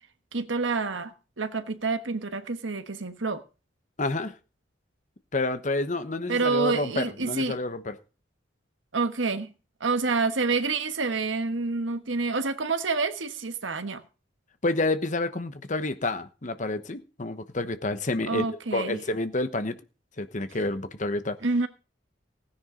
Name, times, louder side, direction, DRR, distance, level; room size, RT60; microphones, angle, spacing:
voice 1, 0.3-3.4 6.3-7.6 8.9-9.5 9.8-14.0 18.3-19.0 21.4-21.7, right 4 dB, 85° right, 1.2 m, -28 dB
voice 2, 4.0-4.3 5.3-8.0 14.6-19.8 20.2-21.4, left 2 dB, 40° left, 1.0 m, -29 dB
16.0 x 10.0 x 3.8 m
head